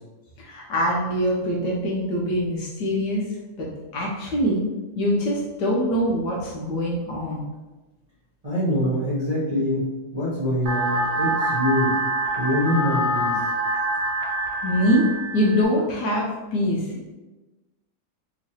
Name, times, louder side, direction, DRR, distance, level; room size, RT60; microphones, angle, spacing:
voice 1, 0.4-3.2 3.6-4.6 4.9-7.4 14.6-15.1 15.3-17.1, equal, 70° left, -3 dB, 1.2 m, -24 dB
voice 2, 8.4-12.0 12.4-13.4, equal, 30° right, -11 dB, 0.8 m, -24 dB
sound 1, 10.7-15.7, right 1 dB, 75° right, 0.6 m, -25 dB
3.6 x 3.0 x 2.8 m, 1.1 s
omnidirectional pair, 2.1 m